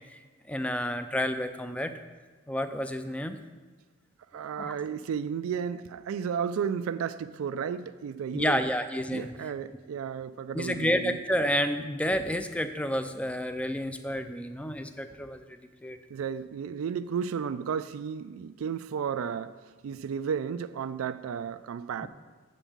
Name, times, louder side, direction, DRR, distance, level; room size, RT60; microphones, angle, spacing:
voice 1, 0.5-1.9 2.5-3.4 4.6-4.7 8.3-9.3 10.5-16.0 22.0-22.1, equal, 5° left, 0.4 m, -30 dB
voice 2, 4.3-8.6 9.1-11.2 16.1-19.6 19.8-22.1, right 7 dB, 90° right, 0.3 m, -33 dB
7.2 x 5.3 x 7.1 m
head